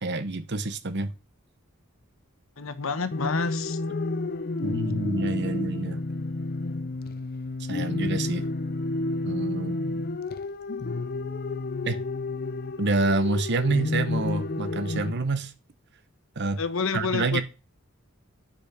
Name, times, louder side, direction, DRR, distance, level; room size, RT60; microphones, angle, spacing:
voice 1, 0.0-1.1 4.6-6.0 7.7-8.4 9.2-9.8 11.8-12.0 12.8-15.5 16.4-16.6 16.9-17.4, right 3 dB, 55° right, 1.0 m, -27 dB
voice 2, 2.6-3.8 16.6-17.4, left 4 dB, 70° left, 1.0 m, -29 dB
sound 1, 3.1-15.1, left 2 dB, 45° left, 0.6 m, -30 dB
9.4 x 5.3 x 6.7 m
head